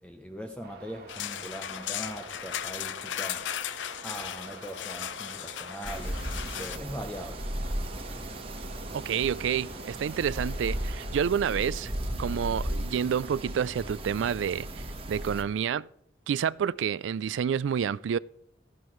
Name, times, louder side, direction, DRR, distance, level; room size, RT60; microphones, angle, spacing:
voice 1, 0.0-3.5 4.0-7.4, equal, 5° left, 0.7 m, -41 dB
sound 1, 0.6-11.2, right 3 dB, 55° right, 1.5 m, -48 dB
sound 2, 1.1-6.8, left 10 dB, 80° left, 0.5 m, -36 dB
sound 3, 5.8-15.4, right 1 dB, 30° right, 1.2 m, -35 dB
voice 2, 8.9-15.9 16.3-18.2, right 8 dB, 85° right, 0.3 m, -29 dB
14.5 x 11.5 x 3.1 m
head